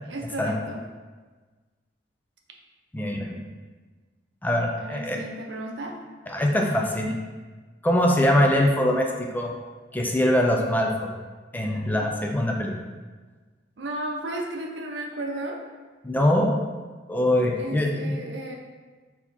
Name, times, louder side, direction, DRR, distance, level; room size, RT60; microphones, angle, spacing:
voice 1, 0.1-0.8 4.8-6.0 11.9-12.1 13.8-15.6 17.5-18.6, right 1 dB, 80° right, 1 dB, 0.6 m, -34 dB
voice 2, 2.9-3.4 4.4-5.2 6.3-7.2 7.8-9.5 9.9-11.1 11.5-12.7 16.0-16.6 17.1-18.2, left 1 dB, 10° left, 1 dB, 0.4 m, -23 dB
4.2 x 2.8 x 4.1 m, 1.4 s
head